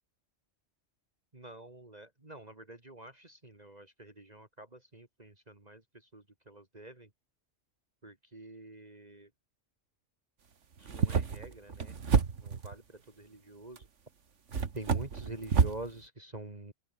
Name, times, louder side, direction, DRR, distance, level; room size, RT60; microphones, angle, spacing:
voice 1, 1.3-5.8 6.1-7.1 8.0-9.3 10.8-11.9 12.4-13.9 14.7-16.7, right 2 dB, 35° right, 3.1 m, -47 dB
sound 1, 10.8-12.7 13.8-13.9 14.5-15.8, right 6 dB, 85° right, 1.9 m, -29 dB
open air
omnidirectional pair, 1.2 m